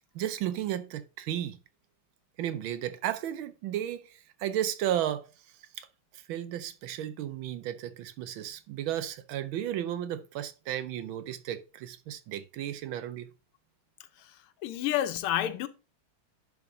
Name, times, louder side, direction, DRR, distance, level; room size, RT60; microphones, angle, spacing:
voice 1, 0.1-1.6 2.4-5.9 6.1-13.3, right 11 dB, 75° right, 1.3 m, -34 dB
voice 2, 14.6-15.7, left 12 dB, 80° left, 1.5 m, -29 dB
10.5 x 3.6 x 3.7 m
omnidirectional pair, 2.4 m